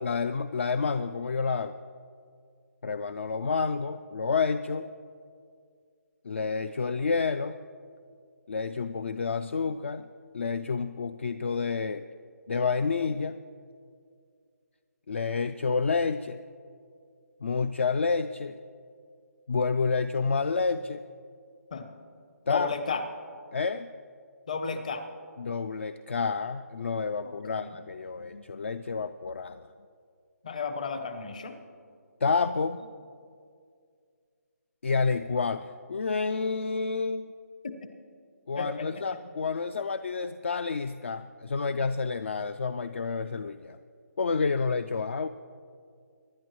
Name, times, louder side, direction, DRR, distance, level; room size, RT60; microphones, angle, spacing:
voice 1, 0.0-1.8 2.8-4.9 6.2-7.6 8.5-10.1 10.3-12.0 12.5-13.4 15.1-16.4 17.4-18.6 19.5-21.0 22.5-22.7 23.5-23.9 25.4-29.7 32.2-32.8 34.8-37.3 38.5-43.8 44.2-45.3, left 4 dB, 45° left, 11 dB, 0.3 m, -29 dB
voice 2, 22.5-23.0 24.5-25.0 27.2-27.7 29.0-29.1 30.4-31.5 37.6-37.7 38.6-39.0, left 5 dB, 25° left, 8 dB, 0.8 m, -33 dB
24.0 x 11.0 x 3.1 m, 2.2 s
hypercardioid pair, 175°, 9 cm